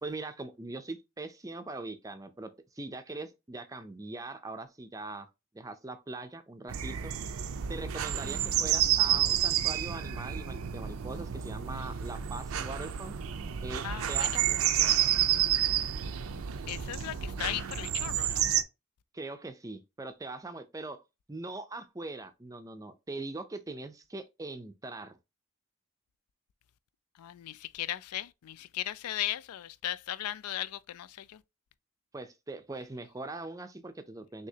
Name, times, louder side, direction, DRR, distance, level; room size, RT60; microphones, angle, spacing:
voice 1, 0.0-2.5 2.7-5.3 5.5-7.1 7.7-13.2 13.6-14.6 19.1-21.0 21.3-25.2 32.1-34.5, right 2 dB, 15° right, 0.4 m, -41 dB
sound 1, 6.7-18.6, right 10 dB, 70° right, 0.4 m, -30 dB
voice 2, 13.8-14.4 16.7-18.4 27.2-31.4, left 13 dB, 90° left, 0.3 m, -37 dB
6.2 x 2.8 x 2.8 m
head